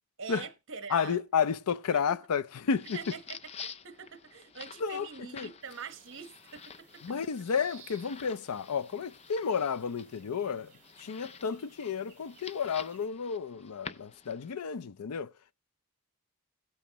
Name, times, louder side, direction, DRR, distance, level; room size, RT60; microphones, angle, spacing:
voice 1, 0.2-1.2 1.9-2.2 2.9-7.3, right 6 dB, 60° right, 1.1 m, -45 dB
voice 2, 0.9-3.0 4.8-5.5 7.0-10.7 11.0-15.3, left 6 dB, 85° left, 0.5 m, -31 dB
sound 1, 2.5-14.5, left 6 dB, 30° left, 0.5 m, -49 dB
sound 2, 5.6-13.1, right 6 dB, 35° right, 2.8 m, -60 dB
16.0 x 8.6 x 3.0 m
head